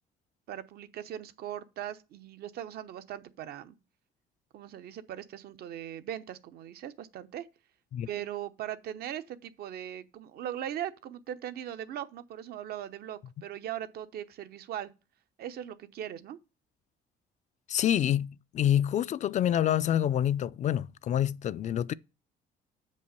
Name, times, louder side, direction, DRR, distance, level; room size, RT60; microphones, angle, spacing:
voice 1, 0.5-3.8 4.5-7.5 8.0-14.9 15.4-16.4, right 11 dB, 70° right, 0.9 m, -39 dB
voice 2, 17.7-21.9, left 10 dB, 45° left, 0.4 m, -27 dB
7.4 x 5.4 x 6.8 m
cardioid pair, 110°, 17 cm